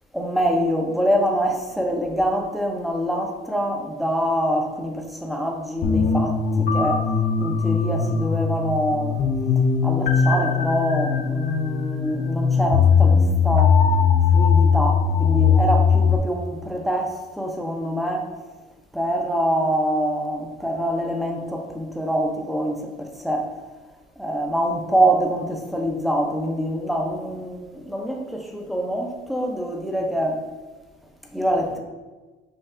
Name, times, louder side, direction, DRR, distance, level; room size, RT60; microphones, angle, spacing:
voice 1, 0.1-7.1 7.4-9.2 9.8-13.8 14.3-18.3 18.9-23.5 24.2-30.4 31.3-31.8, equal, ahead, 1 dB, 0.6 m, -25 dB
sound 1, 5.8-16.2, left 6 dB, 55° left, 0.4 m, -19 dB
5.4 x 2.3 x 3.6 m, 1.3 s
cardioid pair, 110°, 17 cm